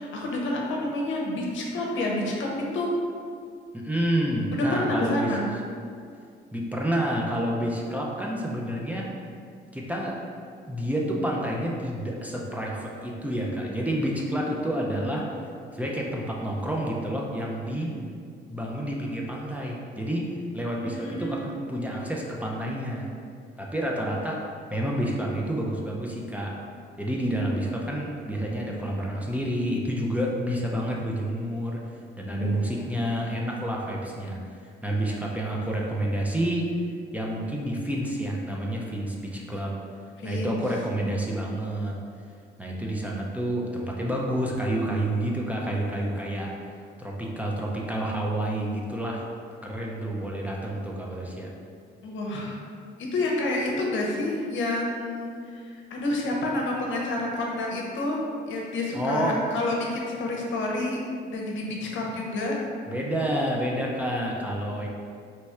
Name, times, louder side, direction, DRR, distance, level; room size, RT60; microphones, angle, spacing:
voice 1, 0.0-2.5 2.7-2.9 4.5-5.5 17.8-18.0 20.6-21.6 32.3-32.8 40.2-40.6 52.0-52.6 53.1-58.2 58.5-62.6, left 2 dB, 70° left, -1 dB, 0.7 m, -29 dB
voice 2, 3.7-5.4 6.5-9.1 9.7-10.2 10.7-15.2 15.7-17.9 18.5-23.1 23.6-26.6 27.0-31.8 32.2-34.4 34.8-36.7 37.1-39.7 40.2-41.9 42.6-46.5 47.0-49.3 49.6-51.5 58.9-59.4 62.9-64.9, right 1 dB, 5° right, -3 dB, 0.5 m, -29 dB
3.2 x 2.3 x 4.3 m, 2.3 s
cardioid pair, 90°, 20 cm